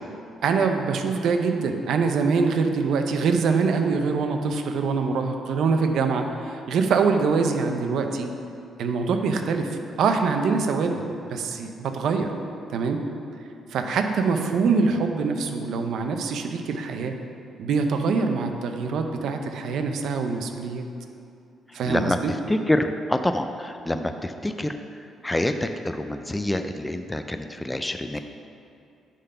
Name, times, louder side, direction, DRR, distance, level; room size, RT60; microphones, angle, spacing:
voice 1, 0.4-8.3 8.8-11.0 11.3-12.3 12.7-13.0 13.7-17.1 17.6-20.9 21.7-22.3, right 4 dB, 75° right, 5 dB, 0.7 m, -24 dB
voice 2, 21.9-22.2 22.5-24.7 25.2-28.2, left 1 dB, 10° left, 7 dB, 0.4 m, -26 dB
10.0 x 3.9 x 5.6 m, 2.5 s
cardioid pair, 90°, 0 cm